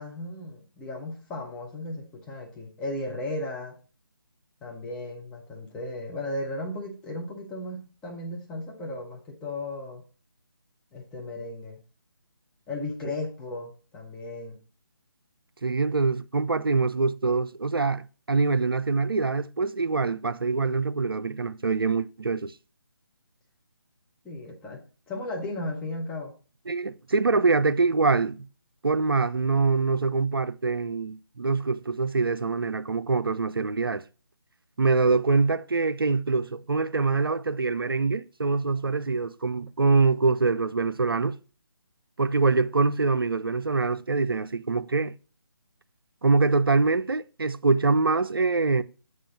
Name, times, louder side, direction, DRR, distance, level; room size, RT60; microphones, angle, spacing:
voice 1, 0.0-3.8 4.6-10.0 10.9-11.8 12.7-14.6 24.2-26.3, left 1 dB, 5° left, 0.6 m, -35 dB
voice 2, 15.6-22.5 26.7-28.5 28.8-34.0 34.8-41.4 42.2-45.1 46.2-48.8, right 4 dB, 65° right, 0.5 m, -24 dB
7.7 x 3.7 x 6.1 m
figure-of-eight pair, 150°, 13 cm